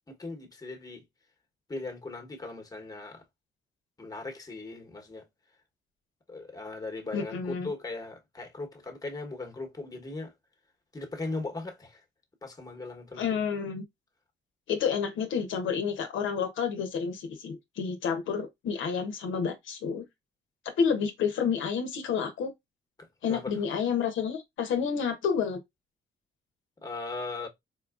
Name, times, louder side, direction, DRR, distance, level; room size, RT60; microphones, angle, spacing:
voice 1, 0.1-1.0 1.7-3.2 4.0-5.3 6.3-10.3 10.9-12.0 12.4-13.3 23.0-23.6 26.8-27.5, left 3 dB, 15° left, 1.1 m, -38 dB
voice 2, 7.1-7.7 13.2-13.8 14.7-20.0 20.8-22.5 23.2-25.6, left 6 dB, 70° left, 0.7 m, -29 dB
4.3 x 2.3 x 2.4 m
cardioid pair, 85°, 21 cm